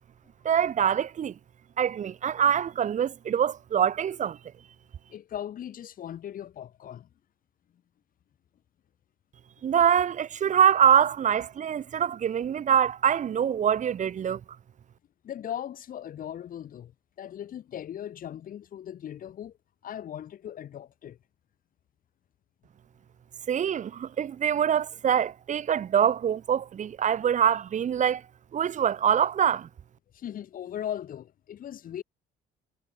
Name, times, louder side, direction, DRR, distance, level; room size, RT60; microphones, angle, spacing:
voice 1, 0.4-1.3 1.8-4.4 9.6-14.4 23.5-28.2 28.5-29.7, right 8 dB, 45° right, 2.5 m, -24 dB
voice 2, 5.1-7.1 15.2-16.9 17.2-19.5 19.8-21.2 30.1-32.0, left 10 dB, 55° left, 6.8 m, -38 dB
cardioid pair, 110°, 17 cm